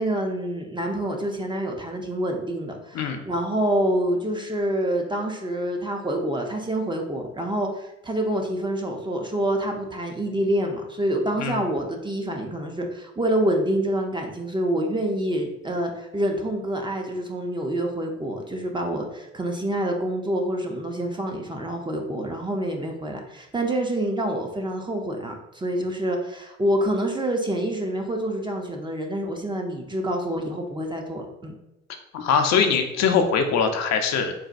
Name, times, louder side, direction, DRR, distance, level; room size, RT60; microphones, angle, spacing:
voice 1, 0.0-31.5, right 1 dB, 15° right, 2 dB, 0.6 m, -27 dB
voice 2, 32.1-34.3, left 6 dB, 55° left, 5 dB, 0.5 m, -22 dB
4.0 x 2.2 x 2.5 m, 0.92 s
hypercardioid pair, 60°, 31 cm